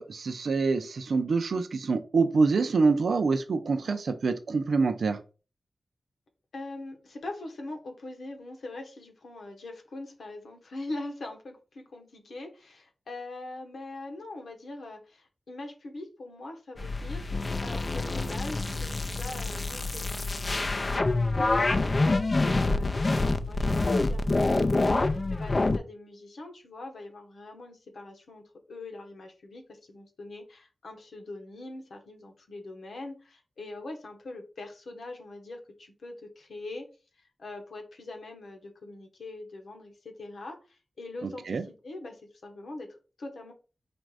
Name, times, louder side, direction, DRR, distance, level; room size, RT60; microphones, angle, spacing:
voice 1, 0.0-5.2 41.5-41.6, right 4 dB, 80° right, 9 dB, 0.5 m, -26 dB
voice 2, 6.5-20.1 20.6-36.9 37.1-43.5, left 2 dB, 85° left, 3 dB, 1.1 m, -42 dB
sound 1, 16.8-25.8, left 2 dB, 35° left, 0.4 m, -26 dB
4.3 x 2.6 x 4.7 m, 0.33 s
wide cardioid pair, 85°, 0 cm